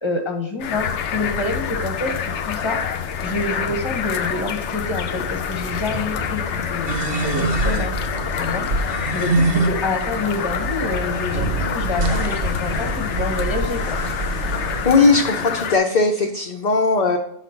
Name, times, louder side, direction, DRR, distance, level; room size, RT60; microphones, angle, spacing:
voice 1, 0.0-2.1 2.4-2.8 3.2-14.0, left 2 dB, 25° left, 4 dB, 1.0 m, -27 dB
sound 1, 0.6-15.8, left 8 dB, 85° left, 0.9 m, -27 dB
sound 2, 0.7-8.1, left 1 dB, 5° right, 0.8 m, -37 dB
sound 3, 6.9-14.9, right 2 dB, 60° right, 0.8 m, -25 dB
voice 2, 14.8-17.2, left 4 dB, 45° left, 1 dB, 0.7 m, -18 dB
5.8 x 4.1 x 5.7 m, 0.70 s
omnidirectional pair, 1.2 m